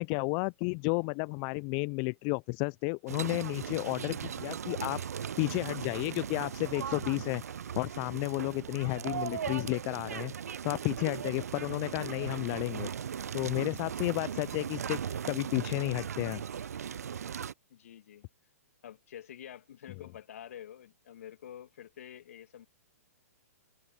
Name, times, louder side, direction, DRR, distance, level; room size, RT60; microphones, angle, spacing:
voice 1, 0.0-5.1 5.4-7.4 7.8-10.3 10.6-12.9 13.3-16.4, left 36 dB, 35° left, 0.5 m, -32 dB
sound 1, 3.1-17.5, right 8 dB, 75° right, 0.4 m, -38 dB
voice 2, 17.7-18.3 18.8-22.7, left 10 dB, 60° left, 2.4 m, -48 dB
figure-of-eight pair, 115°, 8 cm